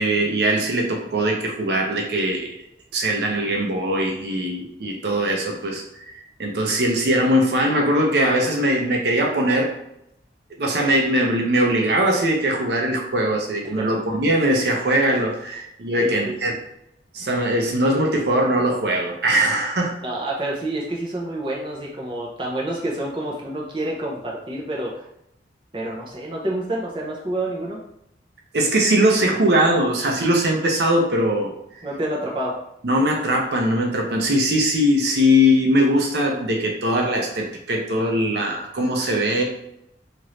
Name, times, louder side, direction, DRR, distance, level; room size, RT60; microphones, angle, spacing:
voice 1, 0.0-2.5 2.9-5.8 6.4-9.7 10.6-16.5 17.1-19.9 28.5-31.5 32.8-39.4, equal, 70° right, 1 dB, 0.6 m, -21 dB
voice 2, 16.0-16.4 20.0-25.1 25.7-27.8 31.8-32.6, right 1 dB, 30° right, -3 dB, 0.6 m, -28 dB
3.0 x 2.5 x 3.1 m, 0.78 s
head